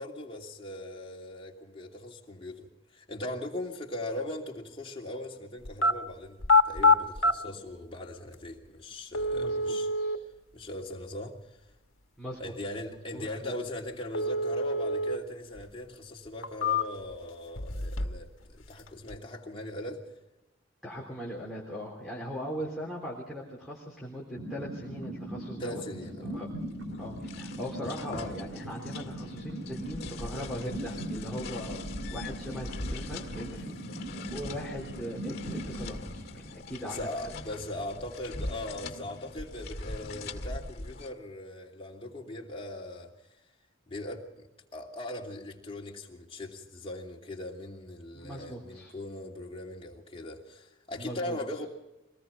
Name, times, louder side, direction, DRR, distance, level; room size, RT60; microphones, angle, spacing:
voice 1, 0.0-9.9 10.5-11.6 12.4-20.0 25.6-26.4 34.4-34.7 36.8-43.1 43.9-51.7, left 1 dB, 30° left, 2.9 m, -40 dB
sound 1, 5.6-5.9 6.4-7.3 8.3-8.4 9.1-10.2 14.1-15.2 15.6-15.7 16.3-17.1 17.5-18.3 18.6-19.1, left 3 dB, 90° left, 1.4 m, -26 dB
voice 2, 9.3-10.1 12.2-12.5 12.9-13.5 20.8-25.8 26.3-26.5 27.0-31.8 32.1-36.4 36.7-37.6 48.1-48.9 51.0-51.4, equal, ahead, 3.6 m, -40 dB
sound 2, 24.4-37.0, right 1 dB, 75° right, 2.9 m, -40 dB
sound 3, 26.3-41.1, left 2 dB, 50° left, 2.1 m, -42 dB
24.0 x 19.0 x 5.7 m
head